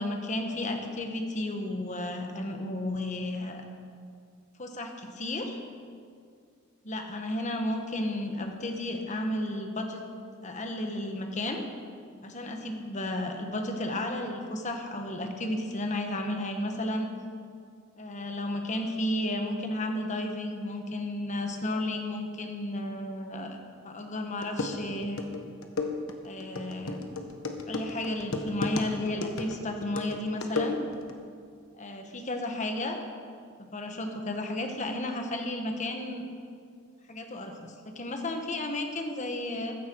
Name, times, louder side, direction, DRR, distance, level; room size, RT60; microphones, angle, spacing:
voice 1, 0.0-3.6 4.6-5.6 6.8-10.0 10.4-11.6 12.2-17.1 18.0-25.2 26.2-27.1 27.7-30.8 31.8-33.0 33.6-36.3 37.1-39.8, left 1 dB, 35° left, 4 dB, 1.5 m, -33 dB
sound 1, 24.0-24.1 24.4-31.1, left 3 dB, 75° left, 1.3 m, -34 dB
15.0 x 14.0 x 4.7 m, 2.2 s
head